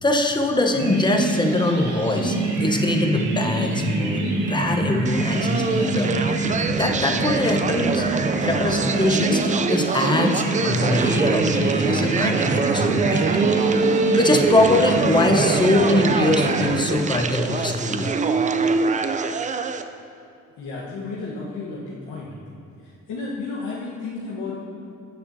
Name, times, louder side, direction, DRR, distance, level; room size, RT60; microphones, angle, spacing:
voice 1, 0.0-6.1 6.8-8.1 8.4-13.3 14.1-18.1, left 2 dB, 15° left, 3 dB, 0.9 m, -22 dB
sound 1, 0.7-17.3, right 2 dB, 70° right, 1.2 m, -25 dB
sound 2, 5.1-19.8, right 4 dB, 25° right, 0.4 m, -24 dB
voice 2, 20.6-22.3 22.8-24.5, left 3 dB, 80° left, -7 dB, 1.2 m, -32 dB
15.0 x 6.9 x 2.7 m, 2.5 s
cardioid pair, 90°, 30 cm